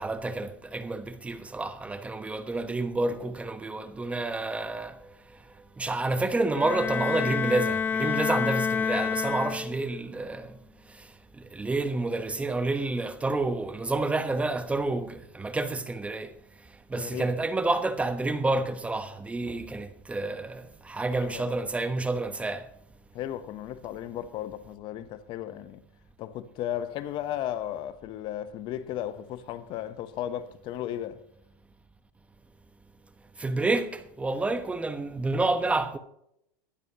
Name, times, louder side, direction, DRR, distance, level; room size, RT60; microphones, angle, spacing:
voice 1, 0.0-5.0 5.8-10.6 11.5-16.3 16.9-22.6 33.4-36.0, right 2 dB, 10° right, 1.1 m, -29 dB
Bowed string instrument, 6.5-10.0, left 6 dB, 15° left, 1.1 m, -28 dB
voice 2, 16.9-17.3 21.2-21.5 23.1-25.8 26.2-31.2, left 11 dB, 45° left, 1.0 m, -35 dB
21.0 x 12.5 x 3.0 m
supercardioid pair, 120°, 11 cm